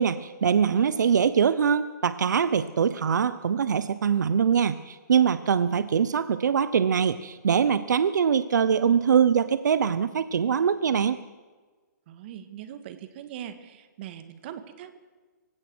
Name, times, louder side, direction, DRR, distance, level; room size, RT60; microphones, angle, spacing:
voice 1, 0.0-11.2, right 7 dB, 70° right, 14 dB, 0.9 m, -23 dB
voice 2, 12.1-15.0, right 10 dB, 35° right, 10 dB, 1.7 m, -41 dB
25.5 x 16.5 x 6.3 m, 1.3 s
hypercardioid pair, 160°, 10 cm